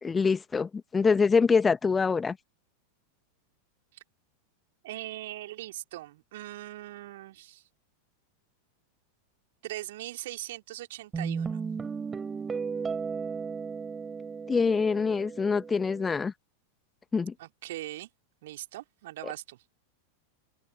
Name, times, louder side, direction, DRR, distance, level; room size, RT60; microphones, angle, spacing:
voice 1, 0.0-2.4 14.5-16.3 17.1-17.3 19.2-19.3, left 5 dB, 15° left, 1.5 m, -25 dB
voice 2, 4.8-7.6 9.6-11.6 17.4-18.1 18.4-19.6, right 15 dB, 55° right, 3.5 m, -40 dB
Guitar, 11.1-16.2, right 5 dB, 15° right, 4.7 m, -35 dB
open air
figure-of-eight pair, 90°, 0 cm